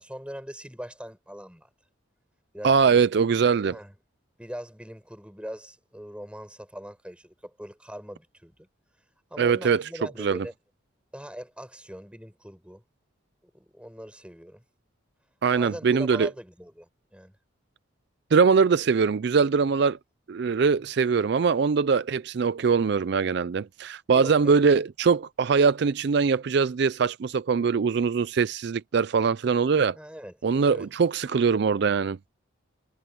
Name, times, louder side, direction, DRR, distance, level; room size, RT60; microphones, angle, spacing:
voice 1, 0.0-1.7 2.5-3.0 3.7-3.9 4.4-8.7 9.3-10.5 11.1-12.8 13.5-14.6 15.5-17.3 24.1-24.6 27.6-27.7 29.9-30.3 30.7-30.9, equal, 5° right, 7.3 m, -41 dB
voice 2, 2.6-3.8 9.4-9.9 10.2-10.5 15.4-16.3 18.3-20.0 20.3-30.0 30.4-32.2, right 5 dB, 55° right, 0.4 m, -22 dB
head